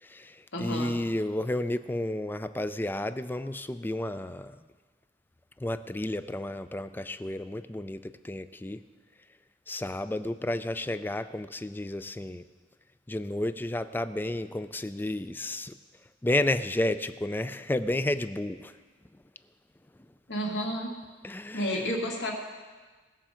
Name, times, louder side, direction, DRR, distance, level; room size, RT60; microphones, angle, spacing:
voice 1, 0.0-4.6 5.6-8.8 9.7-12.4 13.1-15.8 16.2-18.7 21.2-21.8, left 1 dB, 10° left, 12 dB, 0.4 m, -31 dB
voice 2, 0.5-1.0 20.3-20.9 21.5-22.3, equal, 70° left, -1 dB, 2.3 m, -31 dB
19.5 x 7.3 x 5.1 m, 1.4 s
head